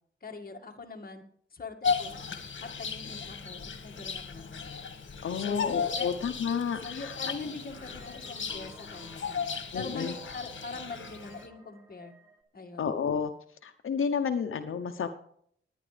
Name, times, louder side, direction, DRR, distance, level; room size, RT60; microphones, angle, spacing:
voice 1, 0.2-1.2 1.5-2.2 2.6-4.8 5.4-6.1 6.8-12.1 12.5-12.9, left 3 dB, 45° left, 2 dB, 2.0 m, -42 dB
Bird vocalization bird call bird song, 1.8-11.5, left 6 dB, 70° left, 1.8 m, -36 dB
voice 2, 5.2-7.2 9.7-10.1 12.8-13.3 13.6-15.1, left 6 dB, 85° left, 6 dB, 0.8 m, -31 dB
sound 1, 7.1-12.4, right 1 dB, 15° right, 2.5 m, -53 dB
20.0 x 9.9 x 3.4 m, 0.65 s
wide cardioid pair, 120°, 21 cm